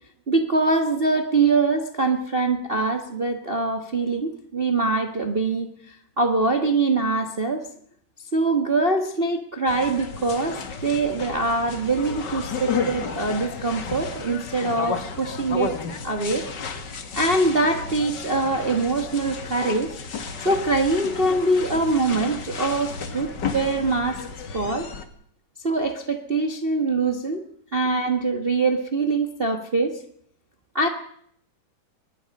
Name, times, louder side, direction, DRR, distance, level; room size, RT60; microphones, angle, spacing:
voice 1, 0.3-7.6 8.3-15.8 16.0-16.5 17.1-20.0 20.4-24.3 24.5-24.9 25.6-27.4 27.7-30.0 30.7-30.9, right 3 dB, 90° right, 5 dB, 0.5 m, -23 dB
sound 1, 9.7-25.0, left 5 dB, 40° left, 1.7 m, -33 dB
23.5 x 20.5 x 5.4 m, 0.66 s
omnidirectional pair, 3.9 m